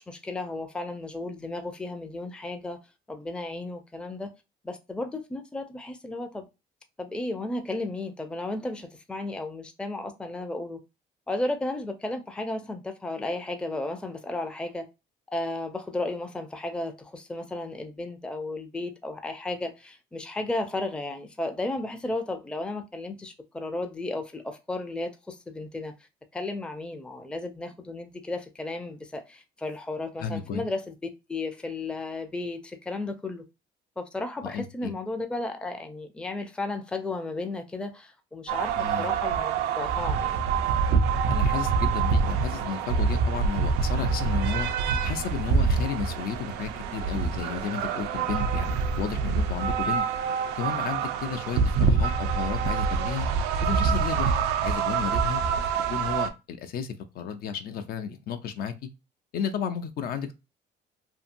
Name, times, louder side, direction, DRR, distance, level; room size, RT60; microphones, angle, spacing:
voice 1, 0.0-2.8 3.1-4.3 4.6-6.5 7.0-10.8 11.3-14.9 15.3-25.9 26.3-33.4 34.0-40.4, left 2 dB, 5° left, 0.4 m, -34 dB
voice 2, 30.2-30.6 34.4-34.9 38.8-39.1 41.3-44.7 45.0-50.0 50.6-53.3 53.6-54.3 54.6-55.4 55.9-58.9 59.3-60.3, left 7 dB, 60° left, 0.5 m, -33 dB
sound 1, 38.5-56.3, right 5 dB, 90° right, 0.4 m, -26 dB
2.7 x 2.6 x 2.5 m
cardioid pair, 110°, 17 cm